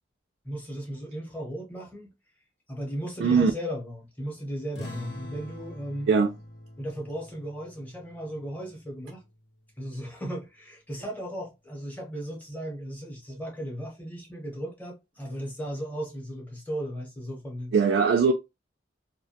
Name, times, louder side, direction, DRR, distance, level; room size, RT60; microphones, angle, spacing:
voice 1, 0.4-2.1 2.7-6.1 6.8-9.2 9.8-17.7, right 1 dB, 10° left, 0.7 m, -36 dB
voice 2, 3.2-3.5 6.1-6.3 17.7-18.3, right 5 dB, 75° right, 0.3 m, -20 dB
sound 1, 4.7-9.8, left 1 dB, 75° left, 0.9 m, -45 dB
2.3 x 2.1 x 2.7 m
head